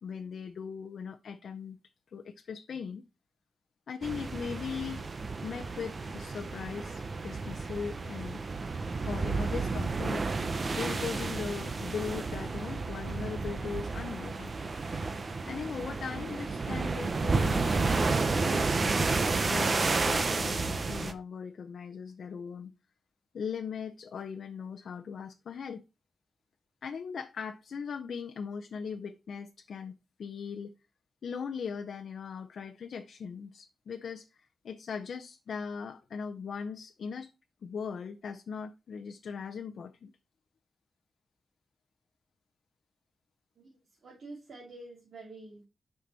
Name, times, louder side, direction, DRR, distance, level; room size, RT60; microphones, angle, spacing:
voice 1, 0.0-1.8 2.1-3.0 3.9-5.1 5.4-8.4 9.1-10.3 10.7-14.5 15.5-18.7 19.4-22.7 23.3-25.8 26.8-29.9 30.2-30.7 31.2-37.3 37.6-40.1, left 6 dB, 85° left, 0.6 m, -39 dB
sound 1, 4.0-21.1, right 3 dB, 35° right, 0.8 m, -31 dB
voice 2, 44.0-45.7, right 2 dB, 60° right, 2.8 m, -47 dB
10.0 x 5.9 x 4.1 m
wide cardioid pair, 170°, 0 cm